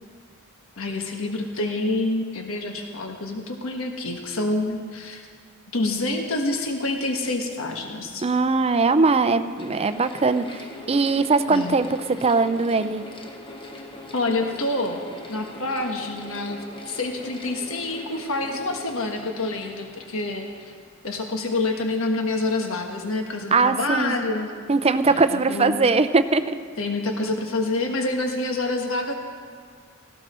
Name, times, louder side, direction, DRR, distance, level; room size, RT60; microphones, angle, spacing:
voice 1, 0.8-5.2 5.7-8.2 11.5-11.8 14.1-15.0 15.3-20.7 21.0-24.5 25.1-25.8 26.8-29.1, left 2 dB, 65° left, 3 dB, 1.4 m, -27 dB
voice 2, 8.2-11.9 12.2-13.0 23.5-24.2 24.7-26.6, right 4 dB, 30° right, 11 dB, 0.5 m, -21 dB
Mechanical fan, 8.7-21.3, left 2 dB, 25° left, 1.2 m, -42 dB
18.0 x 15.5 x 4.3 m, 2.1 s
head